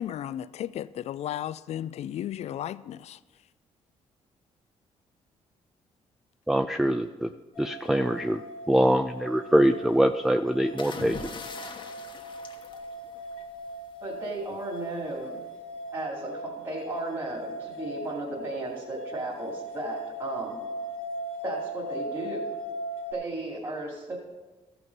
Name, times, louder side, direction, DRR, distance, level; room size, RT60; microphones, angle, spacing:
voice 1, 0.0-3.2, left 11 dB, 60° left, 0.4 m, -34 dB
voice 2, 6.5-7.3 7.6-8.4 8.7-11.3, right 1 dB, 5° right, 0.4 m, -23 dB
sound 1, 7.5-23.1, equal, 90° left, 1.5 m, -39 dB
sound 2, 10.8-13.5 14.8-15.1, left 4 dB, 45° left, 1.2 m, -41 dB
voice 3, 14.0-15.4 15.9-20.6 21.4-22.4 23.1-24.2, right 2 dB, 30° right, 2.5 m, -35 dB
14.0 x 6.0 x 5.3 m
cardioid pair, 80°, 12 cm